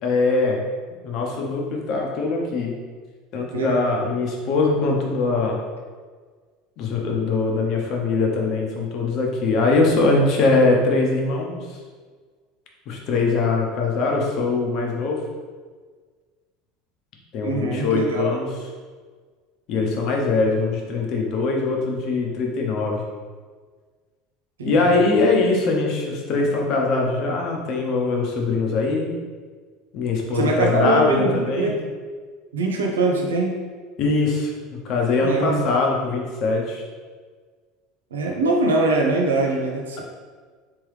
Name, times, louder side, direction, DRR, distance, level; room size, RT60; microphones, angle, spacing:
voice 1, 0.0-0.6 1.0-2.8 3.3-5.6 6.8-11.8 12.9-15.2 17.3-18.7 19.7-23.0 24.6-29.1 29.9-31.7 34.0-36.9, left 3 dB, 55° left, 0 dB, 0.8 m, -22 dB
voice 2, 3.5-3.9 17.4-18.3 24.6-25.0 30.3-31.8 32.5-33.6 35.2-35.6 38.1-40.0, right 2 dB, 85° right, 0 dB, 0.6 m, -22 dB
3.5 x 3.2 x 3.3 m, 1.5 s
hypercardioid pair, 80°, 0 cm